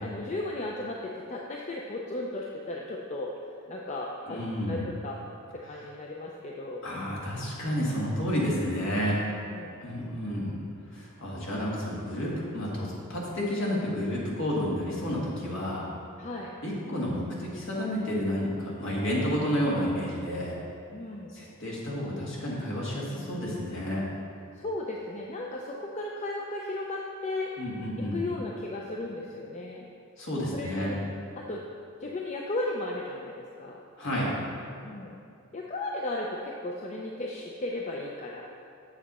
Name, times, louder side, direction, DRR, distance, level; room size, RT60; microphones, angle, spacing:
voice 1, 0.0-3.3 3.7-4.4 4.7-5.2 5.5-6.9 9.4-9.8 16.2-16.5 20.9-21.3 24.6-27.5 28.1-29.9 30.5-31.0 31.4-31.6 32.0-33.8 34.8-35.2 35.5-38.4, left 2 dB, 30° left, -1 dB, 0.5 m, -35 dB
voice 2, 4.3-4.8 6.8-9.2 9.8-10.5 10.9-15.9 16.6-20.6 21.3-24.1 27.6-28.2 30.2-30.9 34.0-34.3, equal, 55° left, -5 dB, 1.8 m, -30 dB
7.4 x 6.9 x 4.2 m, 2.4 s
head